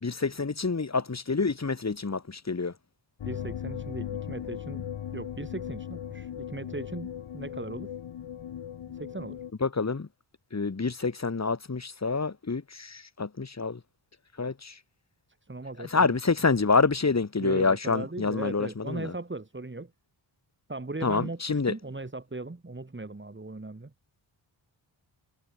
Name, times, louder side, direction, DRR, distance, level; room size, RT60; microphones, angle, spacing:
voice 1, 0.0-2.7 9.6-10.1 10.5-13.8 14.4-14.7 15.9-19.1 21.0-21.7, left 4 dB, 35° left, 2.8 m, -27 dB
sound 1, 3.2-9.5, left 9 dB, 75° left, 1.7 m, -38 dB
voice 2, 3.2-4.8 5.1-7.9 8.9-9.4 15.4-16.2 17.4-19.9 20.7-23.9, right 2 dB, 25° right, 4.4 m, -38 dB
cardioid pair, 60°, 48 cm